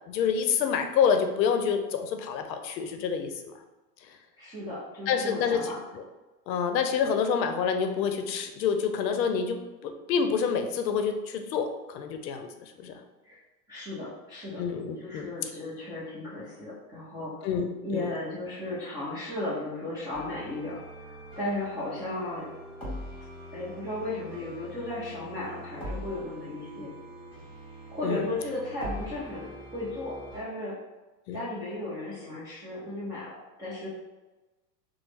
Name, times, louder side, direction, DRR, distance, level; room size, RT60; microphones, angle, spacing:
voice 1, 0.1-3.3 5.1-5.6 5.9-6.0 6.5-12.5 12.8-12.9 14.6-15.3 17.4-17.7 17.9-18.1 28.0-28.2 31.3-31.4, left 6 dB, 85° left, 6 dB, 0.6 m, -27 dB
voice 2, 4.4-5.8 13.2-13.4 13.7-14.6 15.0-17.5 17.8-22.5 23.5-26.9 27.9-30.7 31.3-33.9, left 2 dB, 10° right, -11 dB, 0.3 m, -35 dB
sound 1, 20.1-30.4, equal, 10° left, 1.4 m, -43 dB
3.0 x 2.0 x 3.2 m, 1.1 s
hypercardioid pair, 115°, 50 cm